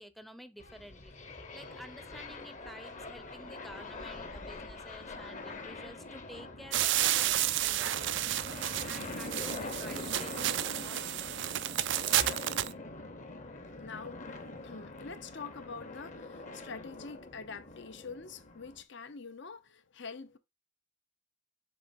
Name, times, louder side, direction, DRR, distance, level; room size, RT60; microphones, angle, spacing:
voice 1, 0.0-8.4 8.8-11.6 12.2-12.3, equal, ahead, 0.7 m, -51 dB
sound 1, 0.6-18.8, left 2 dB, 40° left, 1.0 m, -44 dB
sound 2, 6.7-12.7, right 13 dB, 60° right, 0.4 m, -31 dB
voice 2, 13.7-20.4, left 5 dB, 60° left, 0.8 m, -45 dB
7.0 x 3.1 x 5.3 m
head